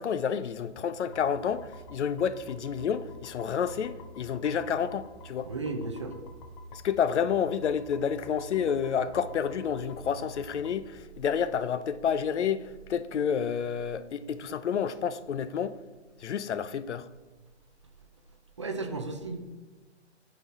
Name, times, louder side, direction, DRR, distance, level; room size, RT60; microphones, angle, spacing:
voice 1, 0.0-5.5 6.7-15.8 16.2-17.1, left 7 dB, 75° left, 0.6 m, -29 dB
sound 1, 1.1-10.8, equal, 25° left, 0.6 m, -48 dB
voice 2, 5.5-6.1 18.6-19.4, right 3 dB, 30° right, 0.4 m, -34 dB
8.4 x 4.1 x 4.1 m
hypercardioid pair, 150°, 35 cm